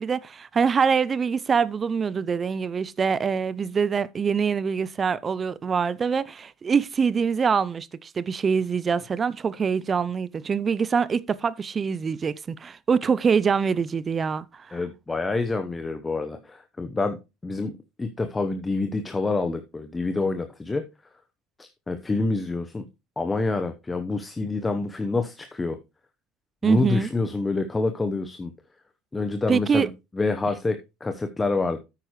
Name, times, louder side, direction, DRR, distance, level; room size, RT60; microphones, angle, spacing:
voice 1, 0.0-14.8 26.6-27.1 29.5-29.9, right 6 dB, 30° right, 0.5 m, -24 dB
voice 2, 14.7-17.2 17.4-17.7 18.0-20.8 21.6-22.8 23.2-25.8 26.6-28.5 29.1-29.9 30.1-30.8 31.0-31.8, left 3 dB, 15° left, 0.9 m, -27 dB
9.3 x 8.8 x 3.1 m
supercardioid pair, 100°, 0 cm